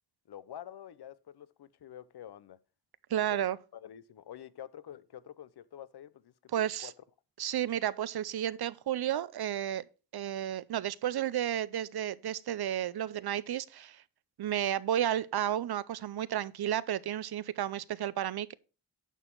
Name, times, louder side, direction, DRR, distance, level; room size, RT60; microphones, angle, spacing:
voice 1, 0.3-2.6 3.3-3.5 3.7-6.9, left 10 dB, 75° left, 0.7 m, -48 dB
voice 2, 3.1-3.6 6.5-6.9 7.4-9.8 10.1-14.0 14.4-18.5, right 11 dB, 70° right, 0.6 m, -32 dB
9.2 x 6.2 x 4.5 m
wide cardioid pair, 110°, 40 cm